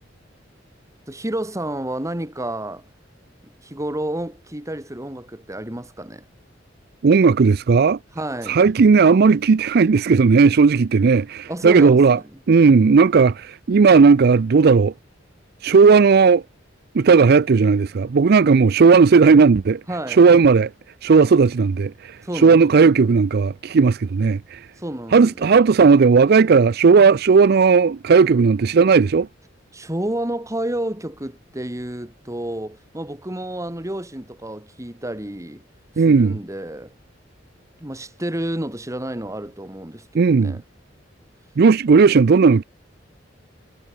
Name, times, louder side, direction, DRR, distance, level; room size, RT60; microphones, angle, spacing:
voice 1, 1.1-2.8 3.6-6.2 8.2-8.6 11.5-12.2 19.9-20.2 22.2-22.6 24.8-25.4 29.7-35.6 36.1-36.9 37.8-40.6, right 1 dB, 15° right, 2.2 m, -30 dB
voice 2, 7.0-8.0 8.4-12.2 12.5-14.9 15.6-16.4 16.9-19.8 20.1-20.7 21.0-24.7 25.1-29.3 36.0-36.4 40.1-40.6 41.6-42.6, right 5 dB, 55° right, 0.4 m, -14 dB
head